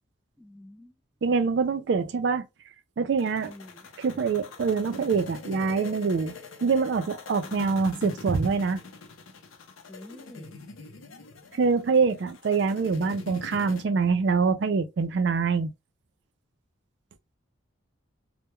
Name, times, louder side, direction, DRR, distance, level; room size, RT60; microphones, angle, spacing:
voice 1, 0.4-0.9 3.3-3.9 9.9-10.6, left 1 dB, 5° left, 0.4 m, -47 dB
voice 2, 1.2-2.5 3.0-3.5 4.0-6.3 6.6-8.8 11.5-15.7, right 5 dB, 60° right, 0.3 m, -25 dB
sound 1, 3.2-13.8, left 3 dB, 80° left, 0.5 m, -44 dB
2.2 x 2.1 x 2.9 m
head